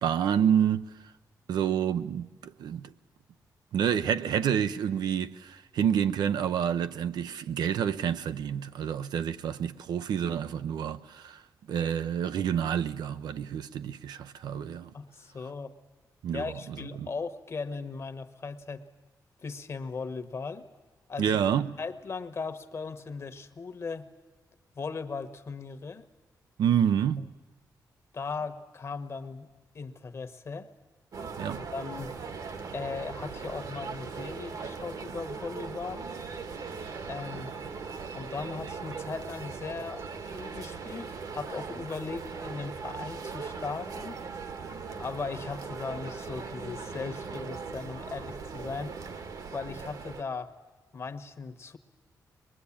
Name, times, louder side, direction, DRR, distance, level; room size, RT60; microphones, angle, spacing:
voice 1, 0.0-0.8 1.5-2.9 3.7-11.4 11.7-14.9 16.2-17.1 21.2-21.7 26.6-27.3 31.4-31.6, right 8 dB, 90° right, 0.7 m, -28 dB
voice 2, 14.9-15.7 16.3-18.8 19.4-20.6 21.1-21.3 21.8-24.1 24.8-26.0 27.2-27.3 28.1-29.5 29.7-30.7 31.5-32.1 32.7-36.1 37.1-37.5 38.1-40.1 40.3-44.2 45.0-49.0 49.5-50.5 50.9-51.8, left 4 dB, 40° left, 1.2 m, -38 dB
sound 1, 31.1-50.2, right 5 dB, 65° right, 1.4 m, -39 dB
24.0 x 21.0 x 8.6 m
wide cardioid pair, 120°, 7 cm